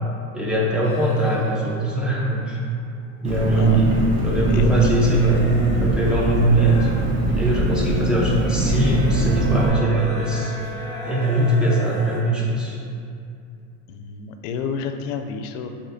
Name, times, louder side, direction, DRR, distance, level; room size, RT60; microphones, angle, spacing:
voice 1, 0.3-2.6 3.2-3.8 4.2-5.4 5.8-6.9 7.3-10.5 11.1-12.8, right 1 dB, ahead, -5 dB, 0.5 m, -21 dB
sound 1, 0.8-2.6 3.0-7.5 8.2-12.2, left 1 dB, 45° left, 0.8 m, -36 dB
Engine, 3.2-9.7, right 2 dB, 55° right, 1.1 m, -22 dB
voice 2, 4.5-4.9 13.9-15.7, left 6 dB, 70° left, 7 dB, 0.5 m, -30 dB
Bowed string instrument, 8.6-12.7, right 2 dB, 75° right, 0.8 m, -39 dB
6.7 x 2.7 x 2.6 m, 2.5 s
supercardioid pair, 140°, 39 cm